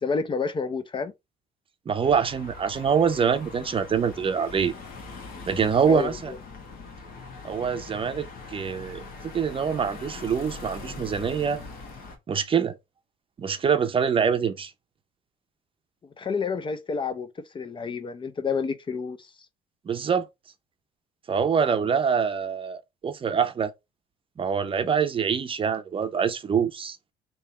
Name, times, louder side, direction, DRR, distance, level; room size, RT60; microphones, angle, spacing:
voice 1, 0.0-1.1 5.9-6.4 16.2-17.3 17.5-19.2, left 5 dB, 30° left, 0.5 m, -29 dB
voice 2, 1.9-4.7 5.5-6.3 7.4-9.0 9.3-11.6 12.3-12.8 13.4-14.7 19.9-20.2 21.3-23.7 24.4-27.0, right 6 dB, 30° right, 0.6 m, -25 dB
sound 1, 2.0-12.2, left 4 dB, 60° left, 1.3 m, -42 dB
3.5 x 2.9 x 4.1 m
cardioid pair, 110°, 17 cm